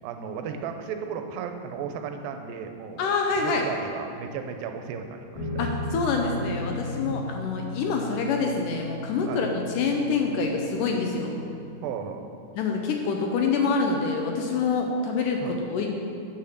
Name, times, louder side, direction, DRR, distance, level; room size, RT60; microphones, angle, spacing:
voice 1, 0.0-3.1 3.4-5.7 7.0-7.3 9.2-9.4 11.8-12.3 15.4-15.6, right 6 dB, 85° right, 6 dB, 2.3 m, -35 dB
voice 2, 3.0-3.6 5.6-11.4 12.6-15.9, left 4 dB, 75° left, 2 dB, 2.0 m, -26 dB
sound 1, 5.3-11.9, left 2 dB, 15° left, 1.2 m, -36 dB
8.4 x 5.7 x 6.5 m, 2.5 s
omnidirectional pair, 4.2 m